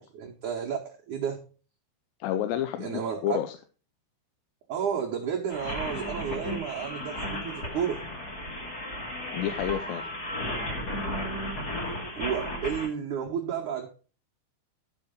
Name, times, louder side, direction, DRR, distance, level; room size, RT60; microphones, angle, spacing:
voice 1, 0.0-1.4 2.8-3.3 4.7-8.0 12.2-13.9, right 8 dB, 75° right, -1 dB, 1.8 m, -32 dB
voice 2, 2.2-3.6 9.3-10.1, left 11 dB, 80° left, 9 dB, 2.7 m, -30 dB
sound 1, 5.5-12.9, left 1 dB, 30° left, 1.9 m, -34 dB
12.0 x 5.6 x 5.1 m, 0.37 s
omnidirectional pair, 5.2 m